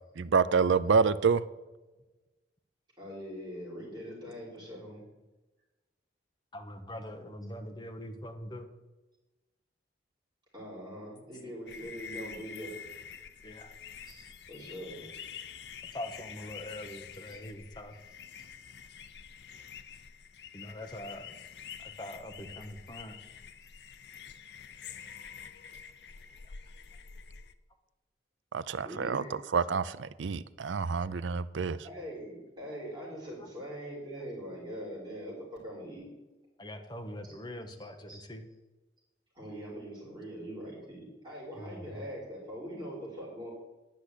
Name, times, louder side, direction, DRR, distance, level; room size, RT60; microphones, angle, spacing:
voice 1, 0.2-1.4 28.5-29.2 29.5-31.8, right 5 dB, 85° right, 16 dB, 0.5 m, -27 dB
voice 2, 3.0-5.1 10.5-12.7 14.1-15.1 17.3-17.4 28.8-29.3 31.8-36.1 37.2-37.3 38.1-38.2 39.3-43.5, equal, 25° right, -5 dB, 4.6 m, -42 dB
voice 3, 6.5-8.7 13.4-13.7 15.9-17.9 20.5-21.4 21.8-23.2 36.6-38.5 41.6-42.0, left 1 dB, 25° left, 5 dB, 1.1 m, -43 dB
sound 1, 11.7-27.5, left 7 dB, 65° left, 0.6 m, -47 dB
10.5 x 6.1 x 8.3 m, 1.1 s
head